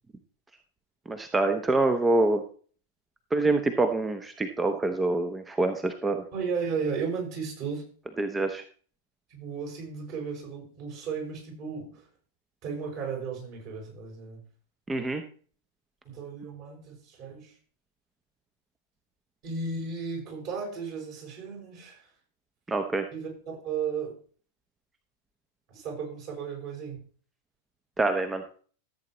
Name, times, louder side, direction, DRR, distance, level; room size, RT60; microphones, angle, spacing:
voice 1, 1.1-2.4 3.3-6.2 8.2-8.6 14.9-15.2 22.7-23.0 28.0-28.4, right 2 dB, 15° right, 7 dB, 0.9 m, -26 dB
voice 2, 6.3-7.8 9.3-12.1 12.6-14.4 16.0-17.6 19.4-22.1 23.1-24.2 25.7-27.0, right 5 dB, 45° right, 0 dB, 6.3 m, -34 dB
14.5 x 8.5 x 3.1 m, 0.43 s
figure-of-eight pair, 90°, 0 cm